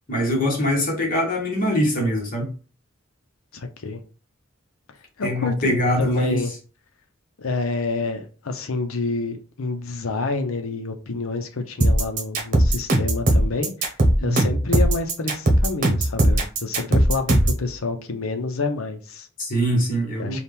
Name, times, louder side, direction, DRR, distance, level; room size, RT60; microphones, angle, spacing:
voice 1, 0.1-2.5 5.2-6.4 14.2-14.4 19.4-20.4, equal, 40° left, 1.3 m, -23 dB
voice 2, 3.5-4.0 5.2-6.5 7.4-13.9 14.2-19.3 20.2-20.4, left 3 dB, 90° left, 0.7 m, -28 dB
sound 1, 11.8-17.6, right 1 dB, 40° right, 1.0 m, -18 dB
4.3 x 2.4 x 3.5 m
head